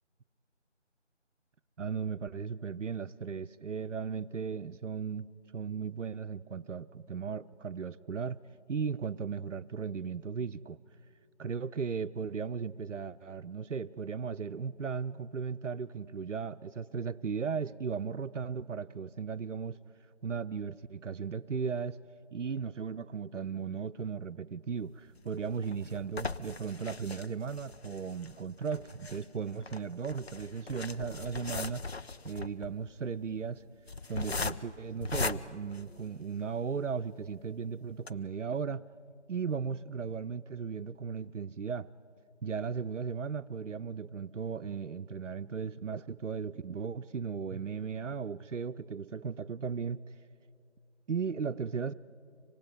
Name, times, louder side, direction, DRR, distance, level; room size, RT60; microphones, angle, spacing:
voice 1, 1.8-5.3 5.5-8.4 8.7-10.8 11.4-19.8 20.2-22.0 22.3-31.8 32.2-33.6 34.1-38.8 39.3-41.9 42.4-50.1 51.1-51.9, right 6 dB, 85° right, 10 dB, 0.6 m, -36 dB
FX Flipping Paper, 25.2-36.5 37.1-37.2 37.5-37.6 37.9-38.1, left 4 dB, 60° left, 0.8 m, -39 dB
25.5 x 19.0 x 9.6 m, 2.4 s
figure-of-eight pair, 165°, 36 cm